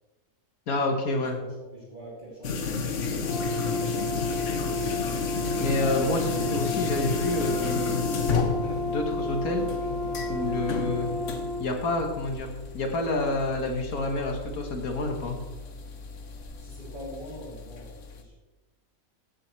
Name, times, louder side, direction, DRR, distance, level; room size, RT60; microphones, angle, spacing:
voice 1, 0.7-1.4 5.6-8.1 8.8-9.7 10.3-11.1 11.6-15.4, left 2 dB, 75° left, 3 dB, 1.7 m, -28 dB
voice 2, 1.3-3.2 10.3-10.6 16.6-18.3, equal, 35° right, -6 dB, 2.8 m, -44 dB
sound 1, 2.4-18.2, left 5 dB, 60° left, 1.2 m, -32 dB
Brass instrument, 3.2-11.7, left 2 dB, 40° left, 4.3 m, -32 dB
15.0 x 8.9 x 3.2 m, 1.2 s
omnidirectional pair, 1.5 m